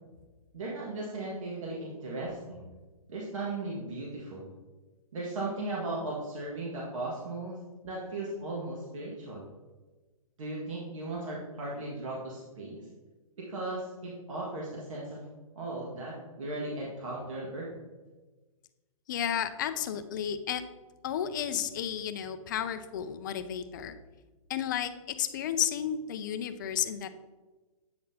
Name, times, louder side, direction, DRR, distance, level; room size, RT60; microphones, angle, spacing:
voice 1, 0.5-2.7 3.1-4.5 5.1-7.6 7.8-9.5 10.4-12.9 13.4-15.2 15.6-17.7, right 2 dB, 60° right, -4 dB, 1.7 m, -37 dB
voice 2, 19.1-20.6 21.0-24.0 24.5-27.1, left 9 dB, 35° left, 11 dB, 0.4 m, -32 dB
8.6 x 5.8 x 2.8 m, 1.2 s
hypercardioid pair, 155°, 19 cm